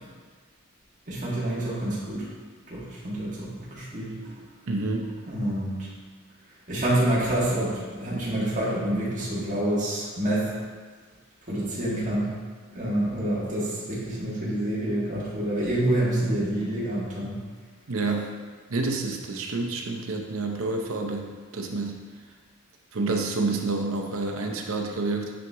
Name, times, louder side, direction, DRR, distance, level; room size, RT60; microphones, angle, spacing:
voice 1, 1.1-2.3 2.7-4.4 5.3-5.9 6.7-10.6 11.4-12.3 12.7-17.4, right 1 dB, 40° right, -8 dB, 1.7 m, -27 dB
voice 2, 4.7-5.1 17.9-18.3 18.7-22.0 22.9-25.3, right 3 dB, 80° right, 2 dB, 0.7 m, -28 dB
8.7 x 3.0 x 3.6 m, 1.5 s
head